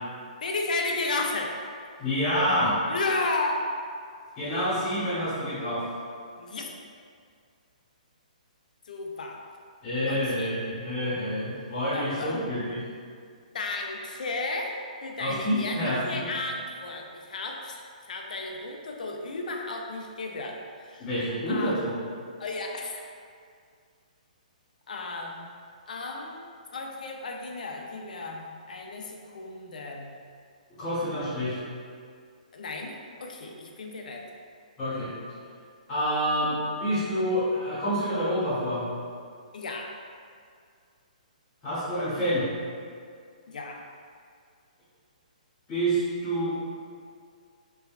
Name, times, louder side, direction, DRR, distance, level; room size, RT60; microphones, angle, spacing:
voice 1, 0.4-1.7 2.9-3.6 6.4-6.7 8.9-9.4 10.1-10.5 11.9-12.4 13.5-21.1 21.5-21.8 22.4-23.1 24.9-25.5 25.9-30.1 32.5-34.2 39.5-40.0 43.5-43.8, left 3 dB, 75° left, 1 dB, 0.4 m, -34 dB
voice 2, 2.0-2.7 4.4-5.8 9.8-12.8 15.2-16.3 21.0-22.0 30.8-31.6 34.8-35.1 35.9-38.8 41.6-42.5 45.7-46.5, equal, 15° left, -12 dB, 0.8 m, -27 dB
3.3 x 2.1 x 2.3 m, 2.2 s
hypercardioid pair, 165°, 4 cm